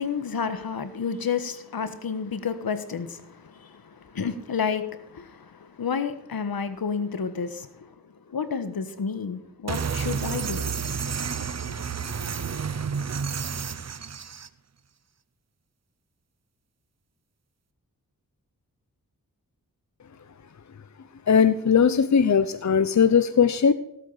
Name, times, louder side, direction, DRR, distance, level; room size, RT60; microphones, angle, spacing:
voice 1, 0.0-10.6, left 6 dB, 75° left, 1.4 m, -31 dB
sound 1, 9.7-14.5, right 6 dB, 45° right, 0.8 m, -30 dB
voice 2, 21.3-23.7, left 6 dB, 50° left, 0.8 m, -19 dB
17.5 x 8.4 x 4.1 m
cardioid pair, 50°, 36 cm